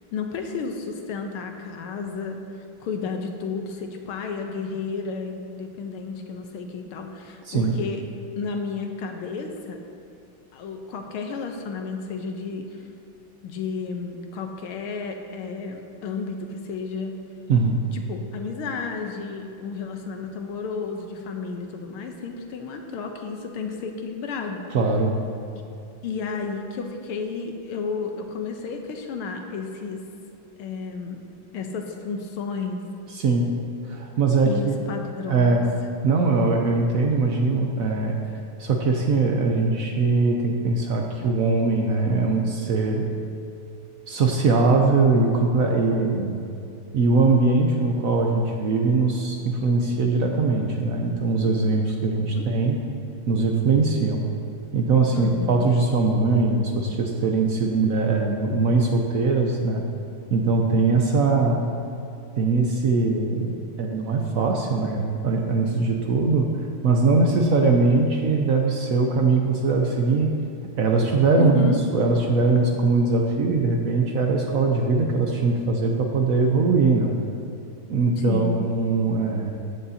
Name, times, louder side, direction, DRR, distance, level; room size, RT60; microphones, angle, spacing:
voice 1, 0.1-2.4 2.8-8.0 8.3-9.8 10.5-12.8 13.4-17.2 17.9-24.7 26.0-30.0 30.6-31.2 31.5-32.8 34.4-35.6 52.3-52.5 55.1-55.7 71.4-71.8 78.3-78.7, left 5 dB, 80° left, 4 dB, 1.7 m, -32 dB
voice 2, 17.5-17.8 24.7-25.2 33.1-33.5 33.8-34.8 35.3-35.7 36.0-38.2 38.6-43.1 44.1-46.4 46.9-52.8 53.3-54.2 54.7-59.8 60.3-61.6 62.4-66.5 66.8-70.4 70.8-77.2 77.9-79.5, right 3 dB, 80° right, 1 dB, 0.7 m, -21 dB
14.5 x 9.7 x 2.8 m, 2.5 s
omnidirectional pair, 2.4 m